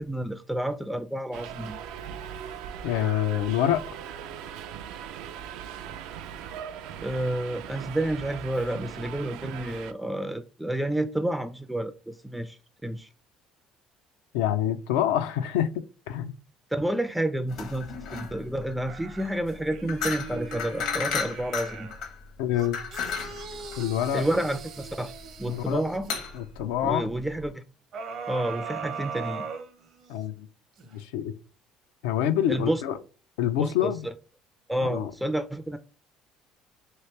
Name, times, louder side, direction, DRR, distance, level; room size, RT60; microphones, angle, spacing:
voice 1, 0.0-1.8 7.0-13.1 16.7-21.9 24.1-25.1 25.4-26.1 26.8-27.6 28.3-29.5 32.5-32.8 33.6-34.1 34.7-35.8, right 1 dB, 5° right, 0.3 m, -30 dB
Subway metro underground, 1.3-9.9, right 9 dB, 80° right, 0.4 m, -39 dB
voice 2, 2.8-3.8 14.3-16.3 22.4-22.8 23.8-24.3 25.5-25.8 26.3-27.1 30.1-30.5 30.9-31.3 32.0-32.9 33.4-34.1 34.9-35.1, left 11 dB, 90° left, 0.4 m, -26 dB
sound 1, 17.5-27.5, left 6 dB, 70° left, 1.0 m, -35 dB
sound 2, 18.9-22.0 22.5-26.2 27.9-30.3 30.8-30.9, right 5 dB, 60° right, 0.7 m, -39 dB
2.9 x 2.9 x 3.2 m
supercardioid pair, 90°, 0 cm